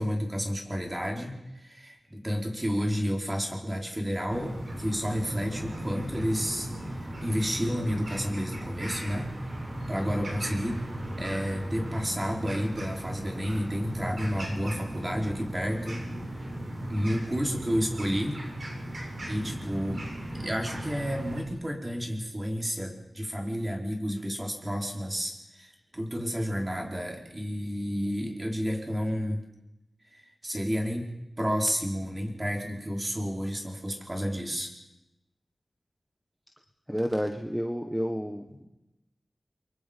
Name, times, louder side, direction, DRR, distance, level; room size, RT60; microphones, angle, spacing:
voice 1, 0.0-9.3 9.9-10.8 11.2-16.0 16.3-16.5 16.9-18.4 18.9-20.0 20.4-29.4 30.1-31.1 31.4-34.7, equal, 25° right, 1 dB, 4.6 m, -31 dB
sound 1, 4.3-21.4, right 1 dB, 65° right, 7.2 m, -36 dB
voice 2, 36.9-38.6, equal, 5° right, 5 dB, 1.5 m, -30 dB
30.0 x 23.5 x 5.4 m, 0.94 s
wide cardioid pair, 70°, 0 cm